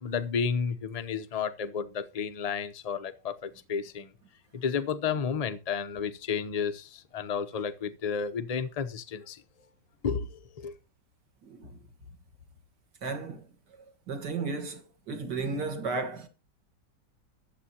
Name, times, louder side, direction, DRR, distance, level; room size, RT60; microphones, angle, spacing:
voice 1, 0.0-4.1 4.5-9.4 10.0-10.7, left 6 dB, 75° left, 0.3 m, -32 dB
voice 2, 11.5-11.8 13.0-13.4 14.1-16.3, right 4 dB, 65° right, 2.2 m, -34 dB
22.0 x 7.8 x 2.8 m
omnidirectional pair, 1.9 m